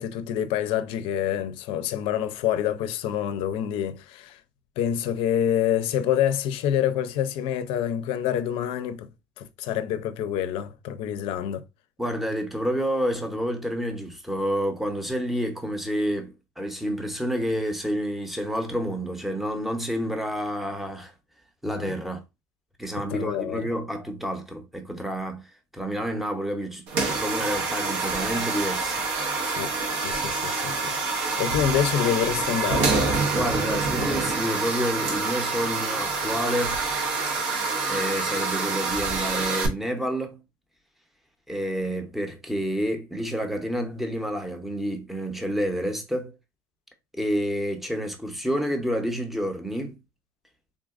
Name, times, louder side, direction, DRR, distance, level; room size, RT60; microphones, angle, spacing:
voice 1, 0.0-4.4 4.8-9.1 9.4-11.6 21.6-22.0 23.1-23.7 29.5-29.7 30.0-33.0, left 10 dB, 65° left, 0.5 m, -27 dB
voice 2, 12.0-21.1 21.6-22.2 22.8-29.0 33.3-36.8 37.9-40.4 41.5-46.3 47.1-50.0, equal, ahead, 0.7 m, -29 dB
sound 1, 26.9-39.7, right 4 dB, 75° right, 0.7 m, -26 dB
3.7 x 2.4 x 2.4 m
supercardioid pair, 120°, 10 cm